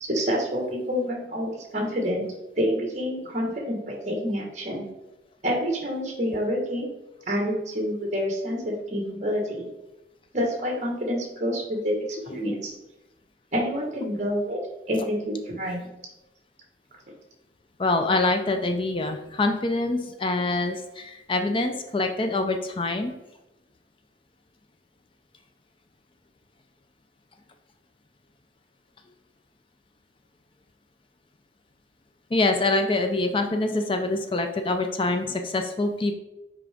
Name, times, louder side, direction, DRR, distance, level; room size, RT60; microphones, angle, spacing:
voice 1, 0.0-2.3 2.5-4.8 5.4-6.9 7.3-9.7 10.3-11.9 12.2-12.7 13.5-14.6 14.9-15.8, equal, 40° right, 1 dB, 1.4 m, -27 dB
voice 2, 17.8-23.2 32.3-36.1, left 2 dB, 30° left, 6 dB, 0.4 m, -25 dB
6.0 x 4.8 x 3.4 m, 0.98 s
head